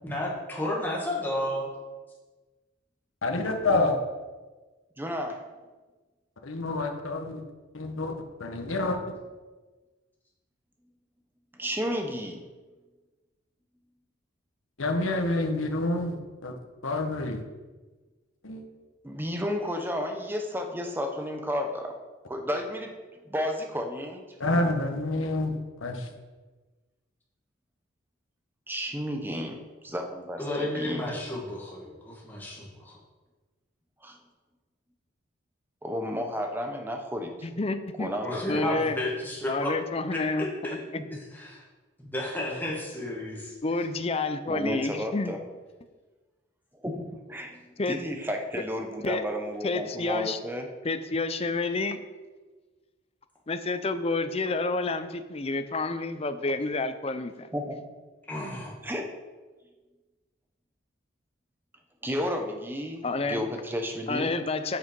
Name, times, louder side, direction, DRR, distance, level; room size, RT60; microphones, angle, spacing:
voice 1, 0.0-1.7 30.4-33.0 38.2-39.7 40.1-40.8 41.3-41.6 42.0-43.5 58.3-58.7, left 1 dB, 10° left, -4 dB, 2.0 m, -32 dB
voice 2, 3.2-4.0 6.4-7.4 7.7-8.1 8.4-9.0 14.8-16.2 16.4-16.5 16.8-17.4 18.4-18.6 24.4-26.1, left 2 dB, 80° left, 3 dB, 1.2 m, -27 dB
voice 3, 5.0-5.4 11.6-12.4 19.0-22.0 22.3-22.9 23.3-24.2 28.7-31.2 34.0-34.2 35.8-37.3 38.0-38.4 44.5-45.4 46.8-50.7 57.5-57.8 58.8-59.1 62.0-64.4, equal, 10° right, 4 dB, 0.9 m, -32 dB
voice 4, 37.4-38.2 38.5-39.0 39.5-40.8 43.6-45.4 47.8-48.0 49.0-49.3 49.6-50.4 50.8-52.0 53.5-57.5 63.0-63.5 64.1-64.8, left 3 dB, 30° left, 10 dB, 0.5 m, -29 dB
7.9 x 6.3 x 5.3 m, 1.3 s
head